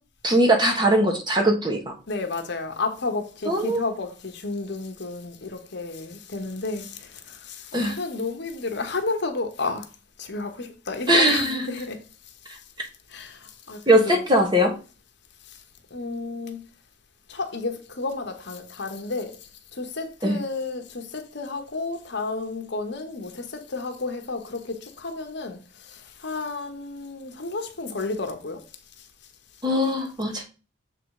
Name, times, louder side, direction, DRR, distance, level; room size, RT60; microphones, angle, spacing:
voice 1, 0.2-1.9 3.5-3.8 7.7-8.0 11.1-11.7 13.9-14.7 20.2-20.4 29.6-30.4, right 1 dB, 20° right, 1.3 m, -20 dB
voice 2, 2.1-9.9 10.2-12.0 13.1-14.3 15.5-15.6 15.9-16.6 17.3-19.4 19.7-28.6, left 3 dB, 60° left, 1.1 m, -32 dB
7.1 x 3.9 x 4.8 m
head